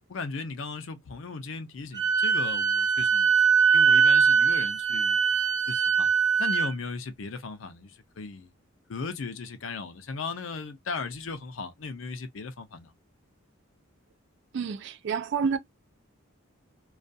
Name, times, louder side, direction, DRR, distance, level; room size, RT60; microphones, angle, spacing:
voice 1, 0.1-3.5 3.7-5.2 5.7-6.1 6.4-8.5 8.9-12.9, left 4 dB, 70° left, 0.5 m, -37 dB
Wind instrument woodwind instrument, 1.9-6.7, right 6 dB, 20° right, 0.6 m, -22 dB
voice 2, 14.5-15.6, right 6 dB, 60° right, 0.4 m, -28 dB
2.3 x 2.3 x 2.6 m
head